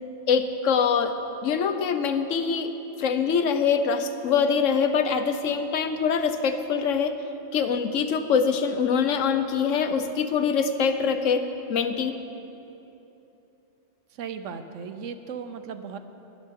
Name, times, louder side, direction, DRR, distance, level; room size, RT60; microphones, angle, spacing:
voice 1, 0.3-2.7 3.0-7.1 7.5-12.2, left 6 dB, 85° left, 9 dB, 1.1 m, -24 dB
voice 2, 14.2-16.0, right 6 dB, 85° right, 9 dB, 1.1 m, -36 dB
20.5 x 11.5 x 3.7 m, 3.0 s
omnidirectional pair, 1.3 m